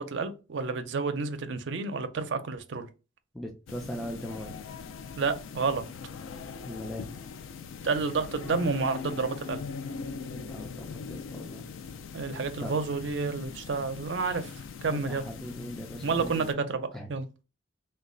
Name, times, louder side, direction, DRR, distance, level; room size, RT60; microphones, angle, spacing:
voice 1, 0.0-2.9 5.2-5.8 7.8-9.6 12.1-14.5 14.8-15.2 16.0-17.3, right 4 dB, 65° right, 0.5 m, -30 dB
voice 2, 3.3-4.6 6.7-7.1 10.3-11.6 12.6-12.7 14.9-16.5 16.9-17.1, equal, ahead, 0.4 m, -39 dB
sound 1, 3.7-16.5, left 5 dB, 90° left, 0.4 m, -41 dB
3.1 x 2.2 x 3.7 m
head